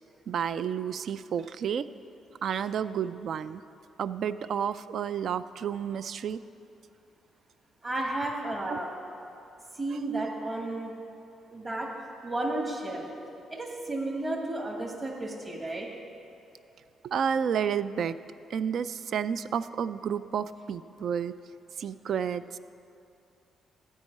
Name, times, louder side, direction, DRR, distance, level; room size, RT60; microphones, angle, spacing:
voice 1, 0.3-1.8 2.4-3.6 4.0-6.4 8.7-8.8 9.9-10.0 17.0-18.2 18.5-21.3 21.8-22.6, right 8 dB, 65° right, 14 dB, 0.3 m, -31 dB
voice 2, 7.8-8.9 9.7-10.9 11.5-11.9 12.2-13.0 13.5-15.9, right 2 dB, 35° right, -1 dB, 1.7 m, -32 dB
12.5 x 4.6 x 8.5 m, 2.7 s
cardioid pair, 90°, 0 cm